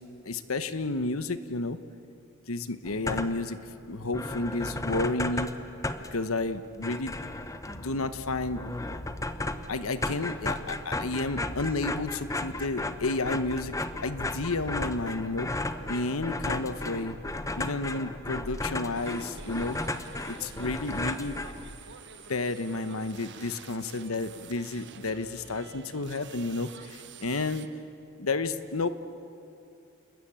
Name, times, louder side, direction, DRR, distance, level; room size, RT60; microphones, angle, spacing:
voice 1, 0.2-1.8 2.5-3.6 3.9-5.5 6.1-7.1 7.8-8.6 9.7-13.7 14.0-15.5 15.9-17.2 17.5-19.8 20.3-21.4 22.3-27.7 28.2-28.9, left 3 dB, 80° left, 11 dB, 1.1 m, -31 dB
sound 1, 2.9-3.6 3.9-4.0 4.1-22.0, left 2 dB, 15° left, 1.0 m, -35 dB
sound 2, 7.6-15.1, equal, 55° left, 6.3 m, -46 dB
sound 3, 18.9-27.7, right 6 dB, 60° right, 1.3 m, -48 dB
29.5 x 21.0 x 8.8 m, 2.6 s
head